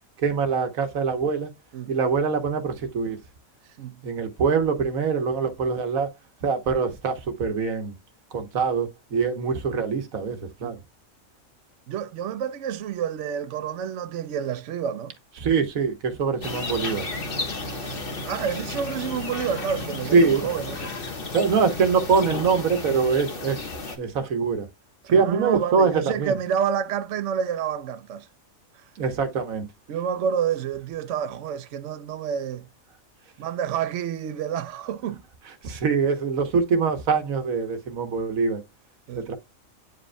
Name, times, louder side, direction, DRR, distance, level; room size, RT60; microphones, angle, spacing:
voice 1, 0.2-1.5 1.9-3.2 4.0-6.1 6.4-7.9 8.3-10.8 15.4-17.1 20.1-20.4 21.3-23.7 24.0-24.7 25.1-26.4 29.0-29.7 35.6-38.6 39.1-39.3, right 5 dB, 90° right, 1.4 m, -23 dB
voice 2, 11.9-15.1 17.8-17.9 18.3-20.9 25.1-28.3 28.7-28.9 29.9-32.6 33.4-35.2 39.1-39.3, right 8 dB, 65° right, 0.9 m, -29 dB
sound 1, 16.4-24.0, left 3 dB, 45° left, 1.4 m, -33 dB
8.9 x 5.1 x 2.2 m
omnidirectional pair, 1.4 m